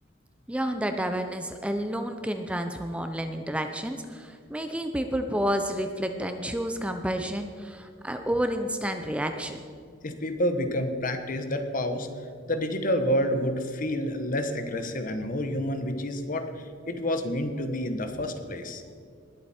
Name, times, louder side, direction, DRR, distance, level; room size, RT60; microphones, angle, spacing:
voice 1, 0.5-9.6, equal, 5° right, 6 dB, 0.6 m, -30 dB
voice 2, 10.0-16.5 16.9-18.8, equal, 45° left, 7 dB, 1.1 m, -29 dB
20.0 x 8.0 x 4.3 m, 2.2 s
head